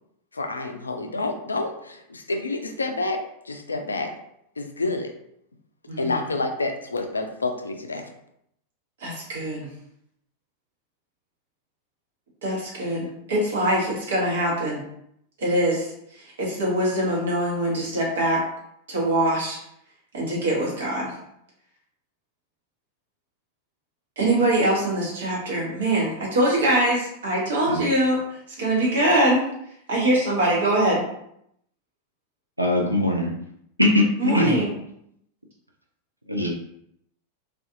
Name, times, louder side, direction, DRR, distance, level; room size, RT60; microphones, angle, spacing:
voice 1, 0.3-3.2 3.4-4.1 4.6-5.1 6.0-8.1, left 2 dB, 75° left, 4 dB, 0.3 m, -28 dB
voice 2, 9.0-9.7 12.4-14.8 15.4-15.9 16.1-18.4 18.9-19.6 20.1-21.1 24.2-29.4 29.9-31.0 34.2-34.7, right 1 dB, 60° right, -4 dB, 1.0 m, -23 dB
voice 3, 32.6-33.3 33.8-34.6 36.3-36.5, left 1 dB, 85° right, 0 dB, 0.4 m, -21 dB
2.5 x 2.3 x 2.5 m, 0.75 s
figure-of-eight pair, 90°, 0 cm